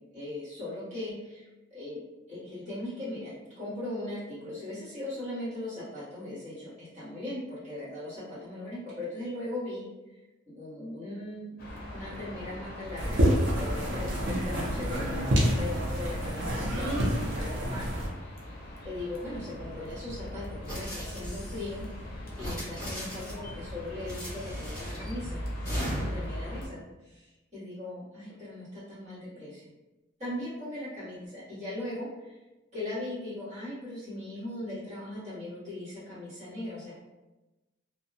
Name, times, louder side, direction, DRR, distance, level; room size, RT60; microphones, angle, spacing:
voice 1, 0.0-1.4 1.7-2.0 2.3-9.8 10.5-13.2 13.5-18.0 18.8-21.8 22.1-29.7 30.2-32.4 32.7-37.0, left 1 dB, 35° right, -14 dB, 1.5 m, -39 dB
sound 1, 11.6-26.7, equal, 45° left, 0.6 m, -41 dB
sound 2, 13.0-18.1, equal, 60° right, 0.6 m, -28 dB
sound 3, 20.6-21.7 22.3-23.5 24.0-25.1 25.6-26.3, equal, 15° left, 1.4 m, -37 dB
2.6 x 2.2 x 2.6 m, 1.1 s
head